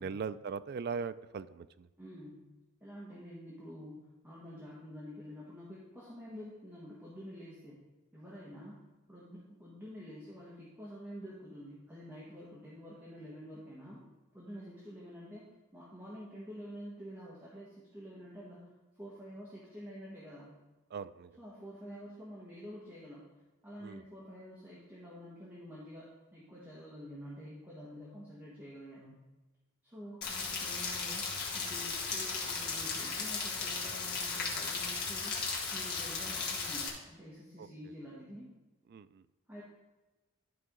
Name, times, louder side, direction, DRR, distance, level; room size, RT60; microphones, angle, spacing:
voice 1, 0.0-1.9 20.9-21.3 23.8-24.0 37.6-37.7 38.9-39.2, right 5 dB, 50° right, 15 dB, 0.3 m, -39 dB
voice 2, 2.0-2.4 2.8-4.0 4.2-7.8 8.1-8.8 9.1-14.0 14.3-18.7 19.0-20.5 21.4-23.2 23.6-29.2 29.8-31.3 31.5-35.4 35.7-38.5 39.5-39.6, equal, 10° right, -8 dB, 1.5 m, -48 dB
Rain, 30.2-36.9, left 4 dB, 45° left, 1.8 m, -36 dB
12.0 x 4.8 x 3.8 m, 1.1 s
head